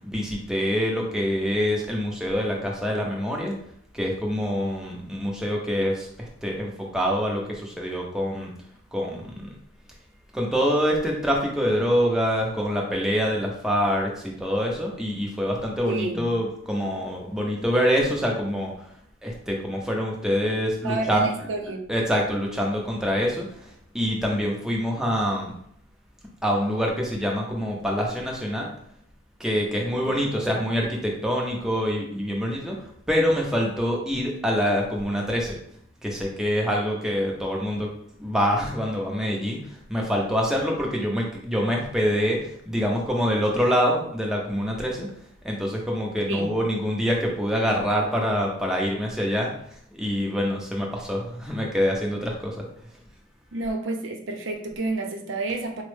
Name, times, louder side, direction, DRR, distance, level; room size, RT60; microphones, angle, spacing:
voice 1, 0.0-3.5 3.9-8.5 8.9-9.6 10.3-18.9 19.2-21.3 21.9-25.5 26.4-28.7 29.4-32.8 33.1-35.6 36.0-37.9 38.2-45.1 45.4-49.5 50.0-52.7, equal, 5° right, -2 dB, 0.5 m, -25 dB
voice 2, 15.8-16.2 20.8-21.8 30.0-30.1 30.5-30.6 46.3-46.5 53.5-55.8, right 3 dB, 65° right, 3 dB, 0.5 m, -30 dB
4.2 x 2.0 x 3.1 m, 0.67 s
head